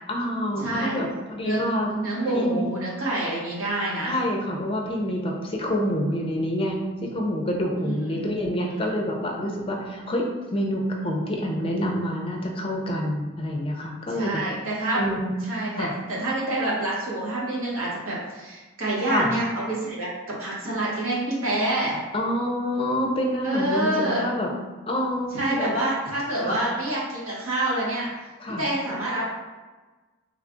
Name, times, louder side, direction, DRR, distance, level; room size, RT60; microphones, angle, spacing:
voice 1, 0.1-1.9 2.3-2.7 4.0-6.8 7.1-14.3 14.9-15.4 15.8-15.9 19.1-19.3 22.1-24.5 24.9-25.8 26.4-26.6 28.4-28.6, equal, 25° left, 0 dB, 0.5 m, -27 dB
voice 2, 0.6-1.0 1.4-1.6 1.9-4.2 7.8-8.3 8.6-8.9 14.2-15.0 15.4-22.0 23.4-24.3 25.3-28.1 28.5-29.2, right 1 dB, 80° right, -6 dB, 1.2 m, -27 dB
3.3 x 2.3 x 3.7 m, 1.2 s
head